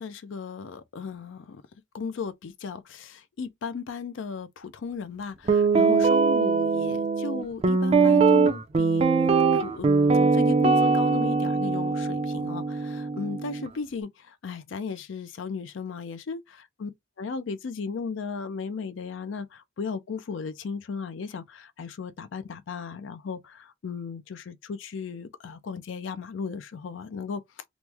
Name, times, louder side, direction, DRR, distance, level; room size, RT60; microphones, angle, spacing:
voice 1, 0.0-1.6 1.9-9.1 9.5-16.4 16.8-16.9 17.2-27.4, left 5 dB, 70° left, 0.4 m, -35 dB
Guitar, 5.5-13.7, right 4 dB, 30° right, 0.4 m, -22 dB
3.0 x 2.0 x 3.3 m
head